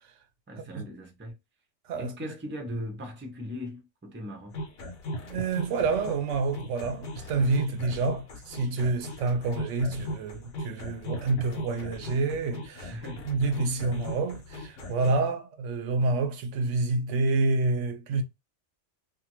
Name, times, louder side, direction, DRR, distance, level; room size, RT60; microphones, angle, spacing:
voice 1, 0.5-1.3 2.0-4.6 12.9-13.3, left 1 dB, 15° right, 0.5 m, -38 dB
sound 1, 4.5-15.2, equal, 85° left, 1.1 m, -38 dB
voice 2, 5.2-13.0 13.2-18.2, right 3 dB, 80° right, 0.9 m, -28 dB
2.6 x 2.5 x 2.9 m
omnidirectional pair, 1.2 m